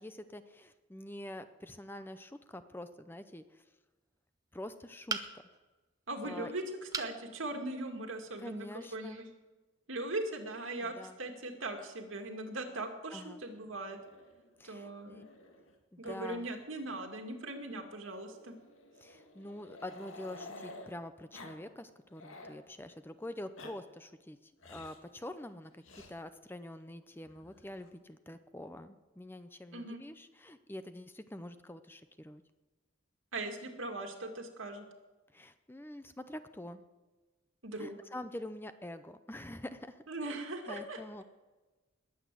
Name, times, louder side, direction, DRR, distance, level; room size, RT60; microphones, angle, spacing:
voice 1, 0.0-3.6 4.5-5.4 6.2-6.5 8.4-9.2 10.8-11.2 13.1-13.4 14.6-15.2 15.9-16.5 19.0-25.8 26.1-32.4 35.3-36.8 37.8-40.4 40.7-41.2, left 1 dB, 10° left, 11 dB, 0.6 m, -46 dB
sound 1, 5.1-5.6 6.9-7.2 7.7-7.8 8.2-8.3, right 4 dB, 20° right, 0.9 m, -37 dB
voice 2, 6.1-6.6 7.0-9.2 9.9-14.0 14.6-15.3 16.0-18.5 29.7-30.0 33.3-34.9 37.6-38.0 40.1-41.0, right 2 dB, 80° right, 4 dB, 2.3 m, -40 dB
Growling, 13.9-15.7 16.0-16.2 16.4-16.6 16.9-17.0 18.1-20.9 21.3-21.6 21.9-22.6 23.3-23.7 24.6-25.0 25.8-26.1 27.2-27.9, left 2 dB, 85° left, 2.2 m, -52 dB
20.5 x 8.4 x 7.7 m, 1.2 s
head